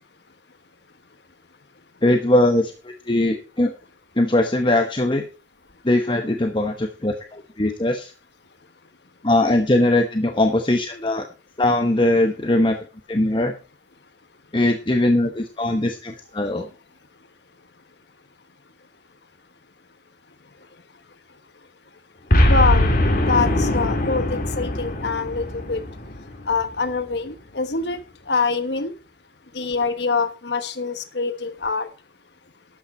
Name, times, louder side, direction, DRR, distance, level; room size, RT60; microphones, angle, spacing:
voice 1, 2.0-3.7 4.2-5.2 5.8-8.1 9.2-11.2 11.6-12.8 13.1-13.5 14.5-16.7, left 1 dB, 25° left, 4 dB, 1.1 m, -20 dB
Boom, 22.3-26.7, left 1 dB, 50° left, 2.8 m, -21 dB
voice 2, 22.5-22.9 23.3-25.8 26.5-28.0 28.3-28.9 29.5-31.9, left 4 dB, 65° left, 9 dB, 1.2 m, -24 dB
12.5 x 8.6 x 4.4 m, 0.33 s
head